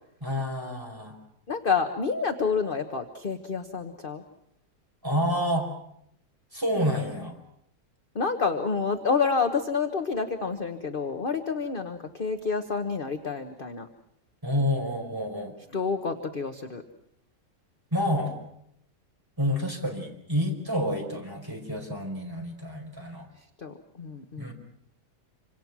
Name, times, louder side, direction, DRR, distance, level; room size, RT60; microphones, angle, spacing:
voice 1, 0.2-1.1 5.0-5.7 6.5-7.4 14.4-15.5 17.9-18.4 19.4-23.3 24.4-24.5, equal, 10° right, 1 dB, 4.7 m, -28 dB
voice 2, 1.5-4.2 8.1-13.9 15.7-16.8 23.6-24.5, left 5 dB, 35° left, 6 dB, 1.3 m, -28 dB
27.0 x 26.0 x 6.1 m, 0.75 s
omnidirectional pair, 1.8 m